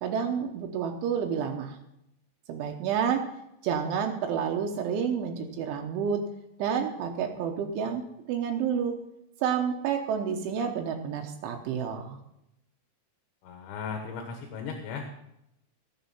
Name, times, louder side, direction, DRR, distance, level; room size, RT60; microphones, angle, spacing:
voice 1, 0.0-1.8 2.5-3.2 3.6-6.2 6.6-8.0 8.3-8.9 9.4-12.2, right 7 dB, 80° right, 2 dB, 3.5 m, -29 dB
voice 2, 13.4-15.1, left 5 dB, 75° left, 4 dB, 3.6 m, -36 dB
19.0 x 7.0 x 5.6 m, 0.82 s
omnidirectional pair, 5.4 m